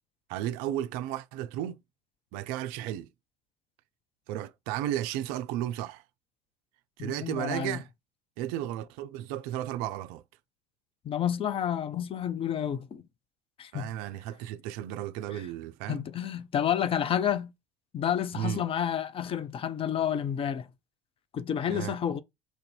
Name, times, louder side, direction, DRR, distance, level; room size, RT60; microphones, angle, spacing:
voice 1, 0.3-1.8 2.3-3.1 4.3-6.0 7.0-7.9 8.4-10.2 13.7-16.0 18.3-18.6 21.7-22.0, right 12 dB, 55° right, 0.4 m, -34 dB
voice 2, 7.0-7.8 11.0-13.0 13.6-13.9 15.3-15.4 15.9-17.5 17.9-20.7 21.3-22.2, left 9 dB, 30° left, 0.5 m, -30 dB
4.7 x 2.6 x 4.3 m
figure-of-eight pair, 65°, 18 cm